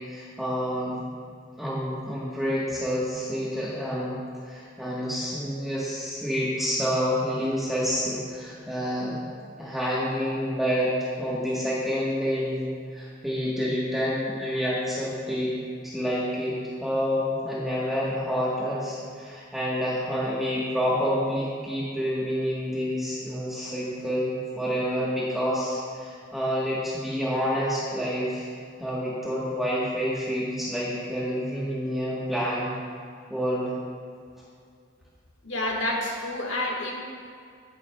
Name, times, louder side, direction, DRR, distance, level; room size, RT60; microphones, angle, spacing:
voice 1, 0.1-1.0 1.6-4.1 4.4-9.2 9.6-12.7 12.9-15.5 15.8-16.5 16.8-28.5 28.8-32.7 33.3-33.7, equal, ahead, -8 dB, 1.1 m, -28 dB
voice 2, 35.4-36.9, left 1 dB, 90° left, -1 dB, 1.4 m, -28 dB
16.5 x 7.1 x 2.2 m, 2.3 s
head